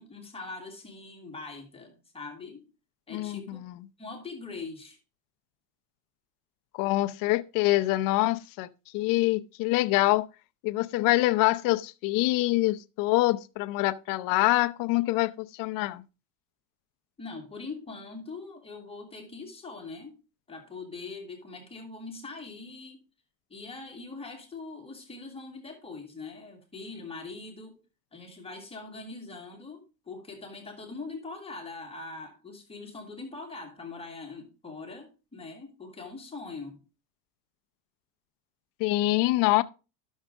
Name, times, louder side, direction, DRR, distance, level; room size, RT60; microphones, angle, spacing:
voice 1, 0.0-2.6 3.1-3.6 4.0-5.0 17.2-20.1 20.5-23.0 23.5-27.8 28.1-36.8, left 3 dB, 10° left, 1.8 m, -42 dB
voice 2, 3.1-3.8 6.8-8.7 8.9-10.3 10.6-16.0 38.8-39.6, left 19 dB, 45° left, 0.6 m, -25 dB
11.5 x 6.4 x 3.6 m
supercardioid pair, 140°, 45 cm